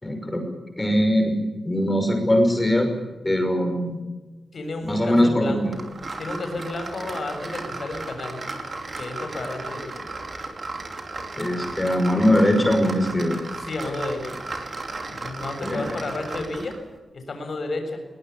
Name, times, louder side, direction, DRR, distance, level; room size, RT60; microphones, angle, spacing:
voice 1, 0.0-0.5 0.8-1.4 1.6-2.9 3.2-4.0 4.9-5.7 11.4-13.4 15.6-15.9, equal, 15° left, 3 dB, 5.9 m, -21 dB
voice 2, 4.5-8.5 9.0-10.0 13.6-14.4 15.1-16.8 17.1-18.1, left 2 dB, 55° left, 5 dB, 7.1 m, -32 dB
sound 1, 5.7-16.8, right 3 dB, 45° right, 4.6 m, -35 dB
22.0 x 20.5 x 8.6 m, 1.2 s
wide cardioid pair, 90°, 0 cm